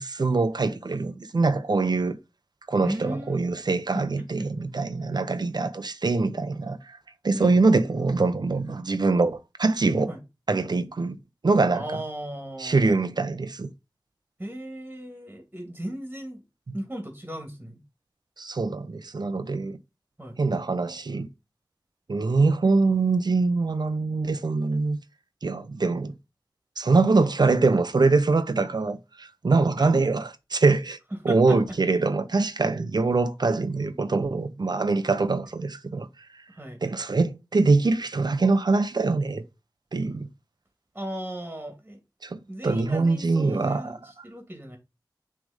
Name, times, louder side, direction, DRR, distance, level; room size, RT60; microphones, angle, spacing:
voice 1, 0.0-2.2 2.7-7.0 7.2-10.1 10.5-11.2 11.4-11.8 12.6-13.7 16.7-16.8 18.4-19.8 20.4-21.3 22.1-25.0 25.4-26.1 26.8-31.0 31.2-36.1 36.8-39.4 39.9-40.3 42.2-44.0, right 3 dB, 65° right, 0.8 m, -23 dB
voice 2, 2.7-3.5 3.9-4.5 7.3-7.6 10.1-10.2 11.7-13.0 14.4-16.4 16.7-17.8 20.2-20.4 29.8-29.9 31.2-31.6 36.5-36.8 40.9-42.0 42.5-44.8, right 1 dB, 20° right, 2.1 m, -36 dB
6.3 x 3.5 x 5.0 m
wide cardioid pair, 65°, 8 cm